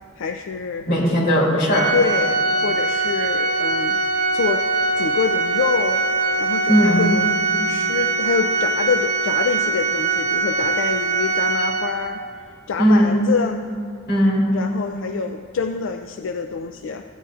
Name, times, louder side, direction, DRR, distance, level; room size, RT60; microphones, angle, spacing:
voice 1, 0.2-0.9 1.9-4.0 4.3-4.7 5.0-6.0 6.4-7.3 7.6-12.2 12.7-13.7 14.5-17.0, left 5 dB, 90° left, 5 dB, 0.4 m, -26 dB
voice 2, 0.9-1.9 6.7-7.1 12.8-13.1 14.1-14.5, equal, 55° left, -5 dB, 2.7 m, -17 dB
Organ, 1.7-12.3, right 3 dB, 40° right, 0.6 m, -22 dB
16.0 x 9.2 x 2.4 m, 2.4 s
head